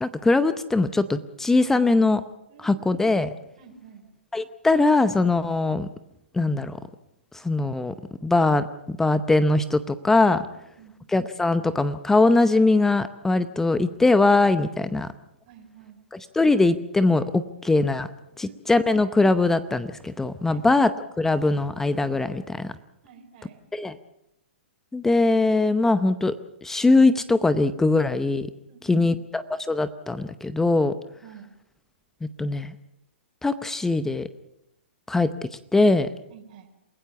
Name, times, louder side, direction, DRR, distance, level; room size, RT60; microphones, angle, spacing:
voice 1, 0.0-2.2 2.6-3.3 4.3-5.9 6.3-6.8 7.4-7.9 8.2-10.5 11.1-15.1 16.1-18.1 18.4-20.9 21.2-22.7 23.7-23.9 24.9-26.3 26.6-28.5 28.9-29.4 29.7-30.9 32.4-32.7 33.4-34.3 35.1-35.3 35.7-36.1, left 2 dB, 5° left, 13 dB, 0.7 m, -21 dB
voice 2, 2.5-2.9 3.6-4.1 10.8-10.9 15.5-16.0 18.4-18.9 20.5-20.6 23.0-23.6 28.7-29.1 31.2-31.5 36.3-36.7, right 7 dB, 45° right, 6 dB, 4.3 m, -49 dB
28.0 x 16.0 x 6.9 m, 0.82 s
hypercardioid pair, 130°, 6 cm